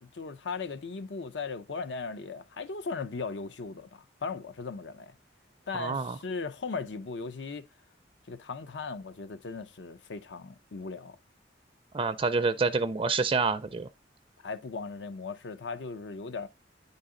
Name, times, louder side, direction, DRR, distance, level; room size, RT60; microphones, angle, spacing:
voice 1, 0.0-5.1 5.7-7.6 8.3-11.2 14.4-16.5, left 4 dB, 75° left, 0.6 m, -37 dB
voice 2, 5.8-6.2 11.9-13.9, right 4 dB, 30° right, 0.4 m, -27 dB
9.5 x 4.1 x 3.7 m
head